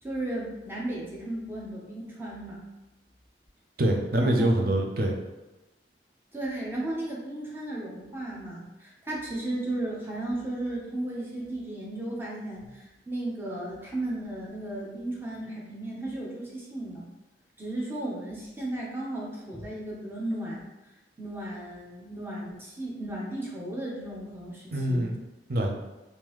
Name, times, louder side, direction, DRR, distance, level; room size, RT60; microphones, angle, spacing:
voice 1, 0.0-2.6 4.2-4.5 6.3-17.1 17.6-20.6 21.2-25.0, right 1 dB, 15° right, -4 dB, 0.7 m, -35 dB
voice 2, 3.8-5.1 24.7-25.1 25.5-25.8, right 1 dB, 55° right, 1 dB, 0.6 m, -24 dB
3.6 x 2.7 x 3.0 m, 1.0 s
head